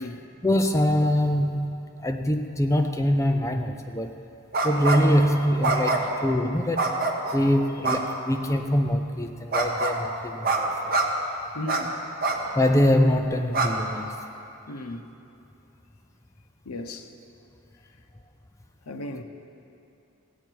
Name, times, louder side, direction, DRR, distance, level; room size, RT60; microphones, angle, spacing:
voice 1, 0.4-4.1 4.6-6.9 7.3-10.8 12.6-14.2, equal, 15° left, 0.4 m, -23 dB
sound 1, 4.5-5.1 5.6-6.2 6.8-7.4 7.8-8.0 9.5-10.0 10.4-10.6 10.9-11.0 11.7-11.8 12.2-12.4 12.9-13.0 13.5-13.7, right 3 dB, 40° right, 1.0 m, -25 dB
voice 2, 11.5-12.0 14.7-15.1 16.6-17.1 18.9-19.2, left 1 dB, 80° left, 0.8 m, -35 dB
17.0 x 8.5 x 4.6 m
head